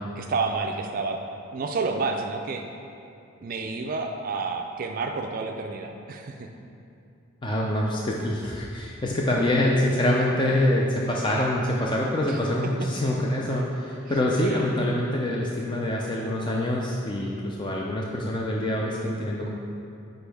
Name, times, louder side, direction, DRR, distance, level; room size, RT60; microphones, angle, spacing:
voice 1, 0.2-1.2 1.5-2.7 3.4-6.5 12.2-12.9 14.1-14.7, right 4 dB, 45° right, 3 dB, 0.4 m, -30 dB
voice 2, 7.4-19.5, left 1 dB, 25° left, -2 dB, 0.4 m, -25 dB
8.0 x 5.2 x 3.4 m, 2.6 s
head